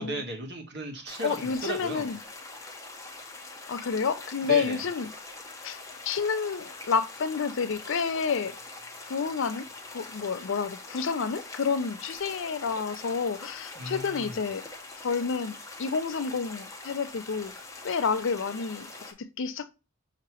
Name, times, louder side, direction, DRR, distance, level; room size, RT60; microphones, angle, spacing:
voice 1, 0.0-2.1 4.4-4.8 13.7-14.4, right 2 dB, 50° right, 1.2 m, -36 dB
sound 1, 1.1-19.1, left 3 dB, 15° left, 0.7 m, -44 dB
voice 2, 1.2-2.2 3.7-5.1 5.6-5.8 6.0-8.6 9.0-9.7 9.9-14.6 15.0-17.5 17.8-19.7, left 5 dB, 60° left, 0.5 m, -29 dB
5.8 x 2.9 x 2.9 m
head